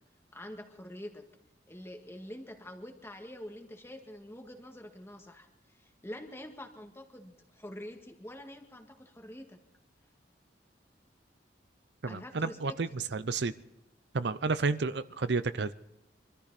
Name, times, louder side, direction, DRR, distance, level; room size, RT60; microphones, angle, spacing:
voice 1, 0.3-1.2 1.7-9.6 12.1-12.8, left 1 dB, 15° left, 4 dB, 1.9 m, -46 dB
voice 2, 12.0-13.5 14.1-15.7, right 4 dB, 70° right, 14 dB, 0.6 m, -31 dB
24.5 x 13.5 x 4.2 m, 0.87 s
head